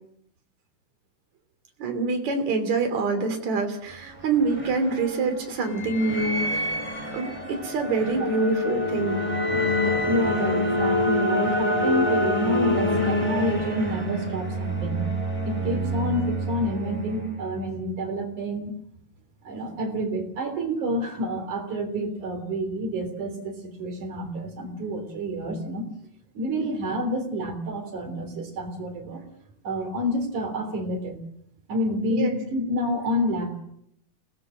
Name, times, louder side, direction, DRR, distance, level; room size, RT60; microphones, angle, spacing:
voice 1, 1.8-6.7 7.1-9.2 26.6-26.7 32.1-32.4, right 4 dB, 70° right, 6 dB, 4.3 m, -26 dB
sound 1, 3.9-17.6, left 1 dB, 10° right, 3.7 m, -26 dB
voice 2, 10.0-15.1 15.4-18.7 19.4-25.9 26.3-29.2 29.6-31.2 31.7-33.6, equal, 90° right, 4 dB, 5.0 m, -28 dB
29.0 x 19.0 x 6.4 m, 0.72 s
omnidirectional pair, 3.4 m